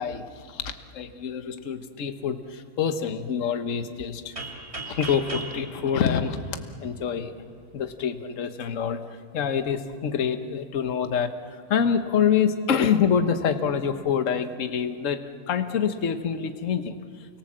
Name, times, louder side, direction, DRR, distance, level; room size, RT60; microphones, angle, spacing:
voice 1, 0.0-4.3 4.9-6.4 6.8-7.3 7.7-9.0 9.3-16.9, left 7 dB, 45° left, 8 dB, 1.3 m, -26 dB
sound 1, 4.4-7.1, right 2 dB, 30° right, 3.3 m, -38 dB
29.0 x 25.5 x 7.5 m, 2.2 s
omnidirectional pair, 2.4 m